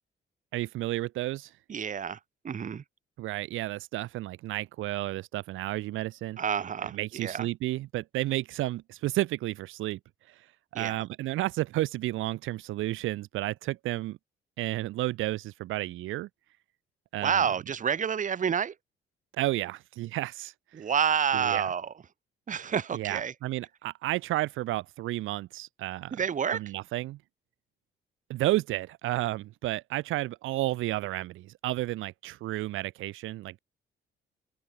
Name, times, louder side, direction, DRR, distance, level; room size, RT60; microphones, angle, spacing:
voice 1, 0.5-1.5 3.2-6.4 6.8-10.0 10.3-10.5 10.7-14.2 14.6-16.3 17.1-17.4 19.3-20.8 21.3-21.7 22.9-26.2 26.5-27.2 28.3-33.6, right 16 dB, 85° right, 0.8 m, -32 dB
voice 2, 1.7-2.8 6.4-7.5 10.7-11.0 17.2-18.7 20.7-21.9 22.5-23.3 26.1-26.6, right 7 dB, 40° right, 1.0 m, -29 dB
open air
cardioid pair, 90°, 20 cm